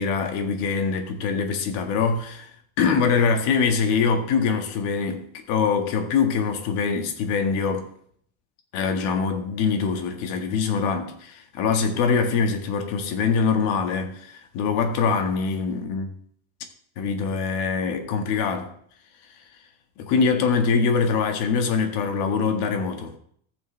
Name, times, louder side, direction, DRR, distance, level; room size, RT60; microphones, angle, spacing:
voice 1, 0.0-2.5 2.8-7.9 8.7-16.2 17.0-18.7 20.0-23.1, left 5 dB, 65° left, 1.7 m, -23 dB
14.5 x 7.0 x 3.3 m
cardioid pair, 165°, 44 cm